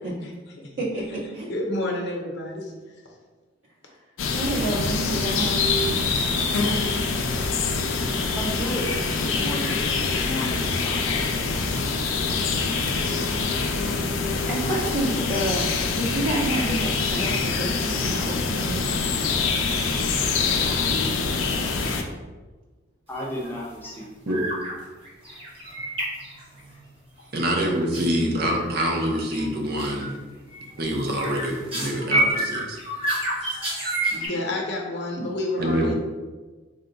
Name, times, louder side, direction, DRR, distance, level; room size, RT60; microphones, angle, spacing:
voice 1, 0.8-1.5 3.8-4.0 4.3-5.9 14.5-15.7 15.9-18.9 20.4-21.1 27.6-27.8 34.1-34.4 35.2-35.3, right 1 dB, 80° right, -6 dB, 1.4 m, -29 dB
voice 2, 1.5-2.7 33.4-33.6 34.3-35.9, left 1 dB, 60° left, 0 dB, 0.7 m, -29 dB
sound 1, 4.2-22.0, left 4 dB, 90° left, 0.4 m, -25 dB
voice 3, 8.3-9.9 10.1-11.1 23.1-24.4, equal, 10° left, -4 dB, 0.6 m, -33 dB
sound 2, 23.1-23.5 23.7-24.0 24.3-24.7 25.0-26.8 27.9-28.1 28.6-29.0 29.3-29.5 29.8-30.1 30.5-34.3, right 1 dB, 30° right, 1.0 m, -29 dB
voice 4, 27.3-30.1 30.8-32.8 35.6-35.9, equal, 50° right, 0 dB, 0.6 m, -25 dB
3.6 x 2.2 x 3.9 m, 1.3 s
head